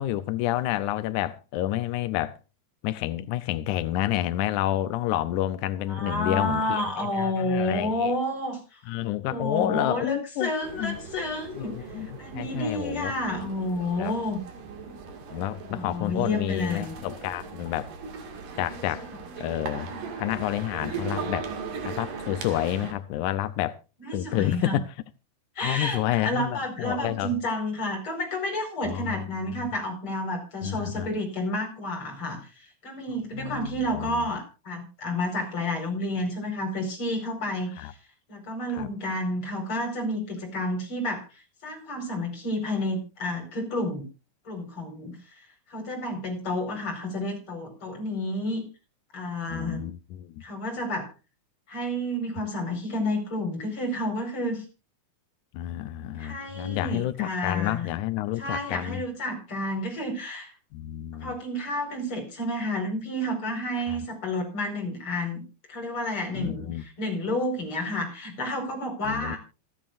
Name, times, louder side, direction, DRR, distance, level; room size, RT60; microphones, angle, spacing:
voice 1, 0.0-2.3 2.8-6.8 7.1-8.1 8.9-10.5 10.8-11.0 11.6-13.1 14.0-14.1 15.3-17.9 18.6-19.1 19.4-19.9 20.2-21.5 21.8-23.8 24.1-24.8 25.6-27.3 28.9-29.7 30.6-31.1 33.3-34.3 37.8-37.9 38.8-38.9 49.5-50.3 55.5-59.0 60.7-61.3 63.9-64.0 66.3-66.8 69.1-69.4, left 13 dB, 80° left, 1.8 m, -29 dB
voice 2, 5.9-8.8 9.2-14.4 15.6-17.0 24.0-24.8 25.6-38.0 38.3-44.0 44.5-48.6 49.1-49.8 50.4-51.1 51.7-54.7 56.1-57.9 58.4-60.5 61.2-69.4, left 1 dB, 35° left, 5.4 m, -30 dB
sound 1, 10.6-22.9, right 5 dB, 65° right, 3.6 m, -39 dB
27.0 x 9.2 x 2.6 m
omnidirectional pair, 4.4 m